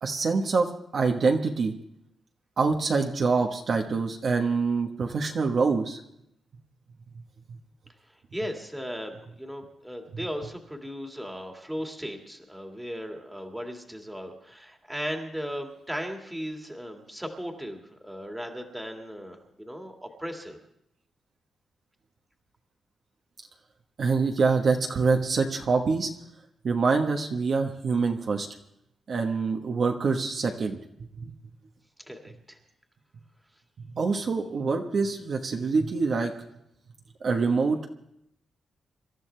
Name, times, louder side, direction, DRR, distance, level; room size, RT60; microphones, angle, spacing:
voice 1, 0.0-1.7 2.6-6.0 24.0-26.1 26.6-28.5 29.1-30.8 31.2-31.3 33.9-36.3 37.2-37.9, right 4 dB, 45° right, 2 dB, 1.3 m, -25 dB
voice 2, 8.3-20.6 32.1-32.6, equal, 5° right, 2 dB, 2.0 m, -37 dB
26.5 x 13.5 x 3.4 m, 0.77 s
wide cardioid pair, 160°, 0 cm